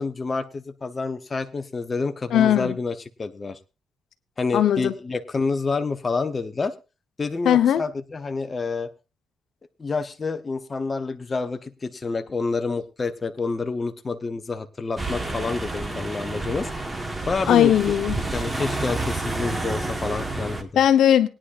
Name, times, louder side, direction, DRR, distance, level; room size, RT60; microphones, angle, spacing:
voice 1, 0.0-3.6 4.4-6.7 7.2-8.9 9.8-16.7 17.3-17.7 18.2-20.7, left 4 dB, 25° left, 0.8 m, -28 dB
voice 2, 2.3-2.7 4.5-4.9 7.4-7.8 17.5-18.1 20.7-21.3, left 10 dB, 75° left, 0.9 m, -18 dB
sound 1, 15.0-20.6, right 2 dB, 15° right, 1.2 m, -29 dB
20.5 x 10.0 x 2.5 m
cardioid pair, 135°, 0 cm